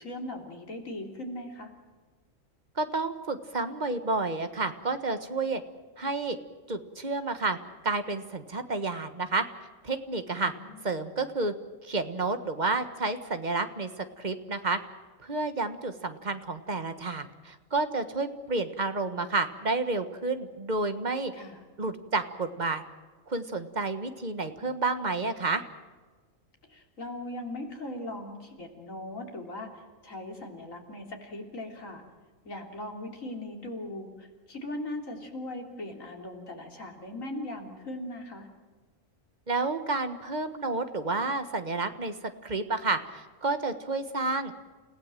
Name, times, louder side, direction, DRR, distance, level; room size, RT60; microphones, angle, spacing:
voice 1, 0.0-1.7 10.3-10.9 21.3-21.6 26.7-32.0 32.5-38.5, left 1 dB, 85° left, 2 dB, 3.7 m, -39 dB
voice 2, 2.8-5.6 6.0-6.4 6.7-7.6 7.8-9.4 9.8-10.5 10.8-11.5 11.8-14.8 15.2-21.3 21.8-22.8 23.3-25.6 39.5-44.5, right 3 dB, 35° right, 9 dB, 1.5 m, -30 dB
29.0 x 16.5 x 7.6 m, 1.4 s
omnidirectional pair, 1.3 m